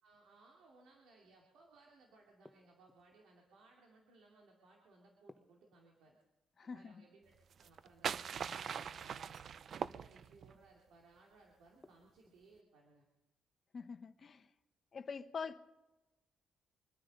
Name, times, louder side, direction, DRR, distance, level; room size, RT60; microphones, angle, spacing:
voice 1, 0.0-6.2 6.6-9.4 9.7-13.1 15.4-15.6, right 3 dB, 80° right, 2.6 m, -64 dB
sound 1, 2.4-3.2 5.3-6.3 8.5-9.3 11.8-12.5, left 1 dB, 5° left, 1.0 m, -62 dB
voice 2, 6.6-7.0 13.7-14.5 14.9-15.6, left 5 dB, 45° left, 1.0 m, -45 dB
sound 2, 7.5-10.6, right 7 dB, 55° right, 0.4 m, -41 dB
25.0 x 9.7 x 5.3 m
cardioid pair, 90°, 0 cm